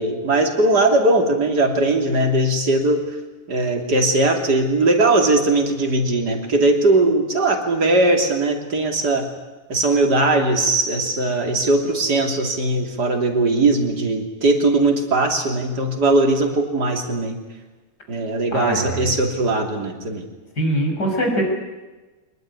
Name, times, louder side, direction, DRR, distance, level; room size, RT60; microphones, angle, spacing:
voice 1, 0.0-3.0 3.5-9.3 9.7-17.4 18.1-20.2, right 2 dB, 85° right, 4 dB, 3.6 m, -19 dB
voice 2, 18.5-19.1 20.6-21.4, equal, 80° left, 2 dB, 6.6 m, -22 dB
24.5 x 20.0 x 9.8 m, 1.2 s
omnidirectional pair, 1.7 m